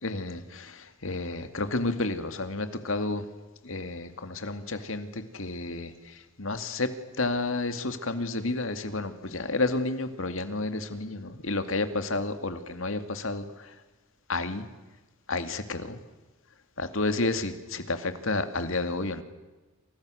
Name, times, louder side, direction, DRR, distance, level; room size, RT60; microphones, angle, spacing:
voice 1, 0.0-3.2 3.6-6.9 7.2-13.7 14.3-14.6 15.3-16.0 16.8-19.2, left 2 dB, 65° left, 9 dB, 2.4 m, -31 dB
29.0 x 26.5 x 6.5 m, 1.2 s
head